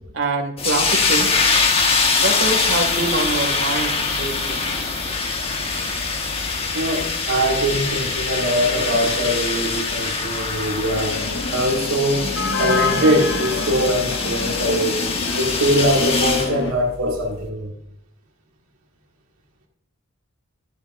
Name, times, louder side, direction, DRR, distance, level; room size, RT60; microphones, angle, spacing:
voice 1, 0.1-1.3 2.2-4.6, right 2 dB, 60° right, 2.0 m, -24 dB
sound 1, 0.6-16.5, left 4 dB, 25° left, 1.4 m, -23 dB
sound 2, 0.8-16.7, left 3 dB, 55° left, 1.0 m, -30 dB
voice 2, 6.7-11.2 11.5-12.3 12.6-15.0 15.3-17.7, equal, 85° right, 1.5 m, -22 dB
20.5 x 7.3 x 2.6 m
head